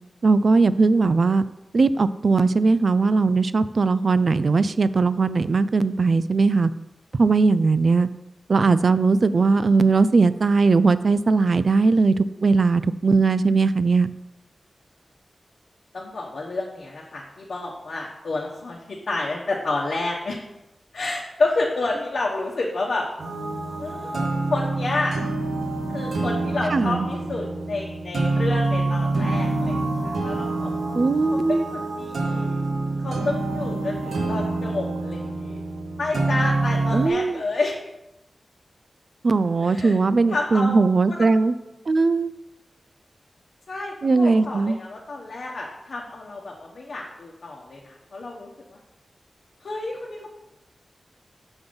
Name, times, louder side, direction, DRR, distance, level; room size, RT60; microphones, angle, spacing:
voice 1, 0.2-1.4 1.7-6.7 7.2-8.1 8.5-14.1 26.7-27.1 30.9-31.6 36.9-37.4 39.2-41.5 41.9-42.3 44.0-44.8, right 4 dB, 60° right, 15 dB, 0.3 m, -19 dB
voice 2, 15.9-20.4 20.9-23.1 23.8-25.2 25.9-30.8 31.3-32.6 33.0-35.6 36.0-37.8 39.6-40.0 40.3-40.7 41.1-41.3 43.7-48.8 49.6-50.4, left 2 dB, 75° left, -2 dB, 1.0 m, -29 dB
sound 1, 23.2-37.1, right 2 dB, 85° right, 1.0 m, -26 dB
6.1 x 5.3 x 5.2 m, 0.93 s
wide cardioid pair, 90°, 0 cm